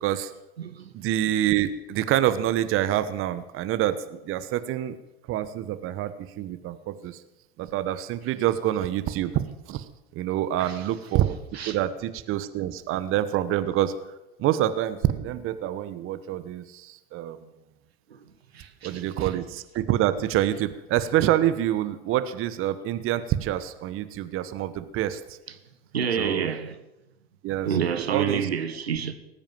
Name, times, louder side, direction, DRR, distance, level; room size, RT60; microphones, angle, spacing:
voice 1, 0.0-0.3 0.9-5.0 5.3-7.2 7.6-13.9 14.4-17.4 18.8-25.4 26.1-26.5 27.4-28.5, right 12 dB, 45° right, 1.2 m, -27 dB
voice 2, 0.6-0.9 10.6-10.7 11.6-11.8 18.1-18.2 18.5-19.0 25.9-26.7 27.6-29.1, right 7 dB, 85° right, 1.4 m, -28 dB
18.5 x 8.9 x 7.6 m
hypercardioid pair, 85°, 31 cm